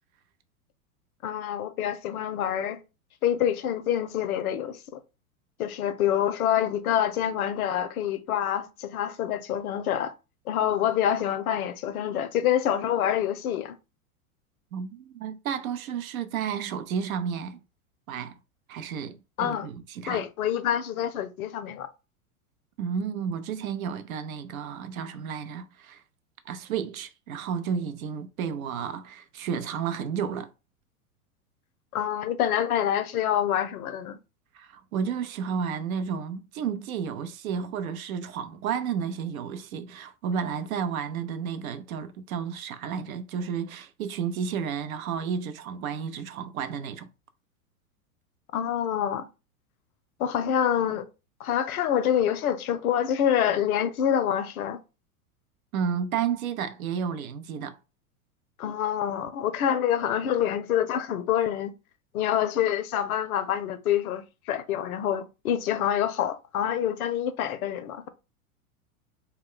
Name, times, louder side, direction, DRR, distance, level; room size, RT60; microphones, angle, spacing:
voice 1, 1.2-2.8 3.2-5.0 5.6-10.1 10.5-13.7 19.4-19.7 20.1-21.9 31.9-34.2 48.5-49.2 50.2-51.1 51.4-54.8 58.6-61.7 62.1-68.1, left 10 dB, 75° left, 0.6 m, -26 dB
voice 2, 14.7-17.6 18.1-18.4 18.7-20.3 22.8-26.0 26.5-30.5 34.5-47.1 55.7-57.8, right 7 dB, 75° right, 0.5 m, -32 dB
2.2 x 2.1 x 3.6 m
hypercardioid pair, 105°, 43 cm